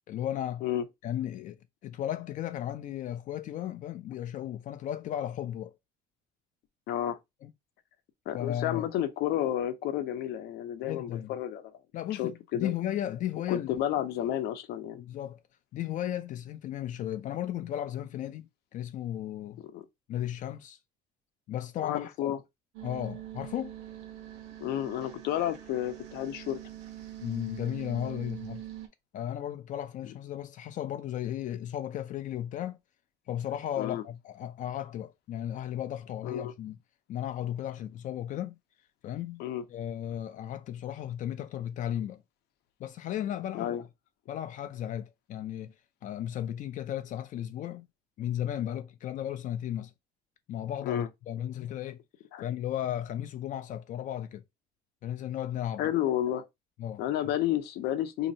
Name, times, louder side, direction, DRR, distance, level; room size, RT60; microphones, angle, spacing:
voice 1, 0.1-0.6 1.0-5.8 7.4-7.5 8.3-8.8 10.8-11.3 11.9-13.7 14.9-15.4 15.7-19.6 20.1-20.8 21.5-22.3 22.8-23.7 27.2-28.6 29.1-32.8 33.3-36.8 37.1-38.6 39.0-39.4 39.7-42.2 42.8-43.8 44.3-45.7 46.0-47.9 48.2-49.9 50.5-52.0 52.4-54.4 55.0-55.9 56.8-57.0, left 11 dB, 50° left, 0.4 m, -35 dB
voice 2, 6.9-7.2 8.3-11.6 12.1-12.7 13.5-15.0 19.7-19.9 21.8-22.4 24.6-26.6 33.8-34.0 36.2-36.5 39.4-39.6 43.5-43.8 50.8-51.1 52.3-52.4 55.8-56.4 57.0-58.3, left 11 dB, 80° left, 0.7 m, -31 dB
sound 1, 22.7-28.9, right 12 dB, 90° right, 1.0 m, -44 dB
4.0 x 2.8 x 2.6 m
cardioid pair, 150°, 17 cm